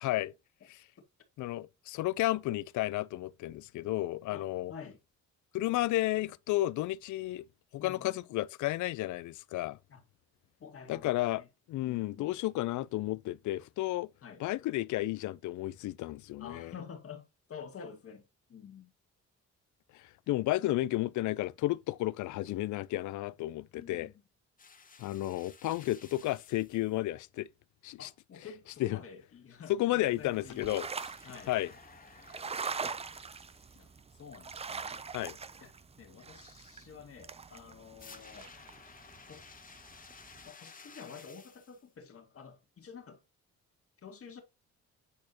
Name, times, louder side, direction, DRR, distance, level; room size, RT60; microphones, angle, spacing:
voice 1, 0.0-0.3 0.7-0.8 1.4-4.7 5.5-7.4 7.7-9.8 10.9-11.4 11.7-14.1 14.4-16.7 19.9-24.1 25.0-27.5 27.8-28.1 28.8-29.0 29.8-30.9 31.5-31.7 35.1-35.4, left 16 dB, 75° left, 0.5 m, -32 dB
voice 2, 4.3-5.0 7.8-8.2 9.9-10.0 10.6-11.5 14.2-14.4 16.4-18.9 23.7-24.2 28.0-30.7 31.2-31.6 33.7-35.1 35.6-35.7 36.0-38.6 39.2-39.5 40.5-43.2 44.0-44.4, left 6 dB, 50° left, 2.0 m, -49 dB
sound 1, 24.6-27.0 30.9-33.8 38.0-41.8, left 5 dB, 30° left, 0.9 m, -55 dB
sound 2, 30.1-40.5, right 5 dB, 20° right, 0.5 m, -43 dB
8.6 x 4.2 x 2.8 m
cardioid pair, 90°, 30 cm